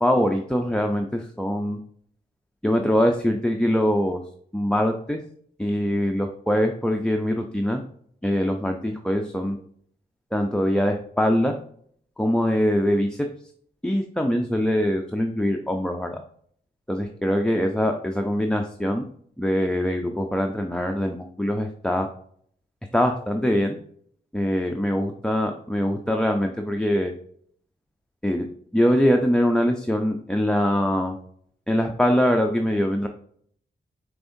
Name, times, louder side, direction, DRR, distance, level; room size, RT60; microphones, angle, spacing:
voice 1, 0.0-1.8 2.6-4.2 4.5-5.2 5.6-7.8 8.2-9.6 10.3-11.6 12.2-13.3 13.8-16.2 16.9-19.0 19.4-22.1 22.9-23.8 24.3-27.1 28.2-28.5 28.7-31.2 31.7-33.1, equal, 5° left, 3 dB, 0.5 m, -23 dB
5.3 x 3.5 x 2.6 m, 0.62 s
wide cardioid pair, 90°, 18 cm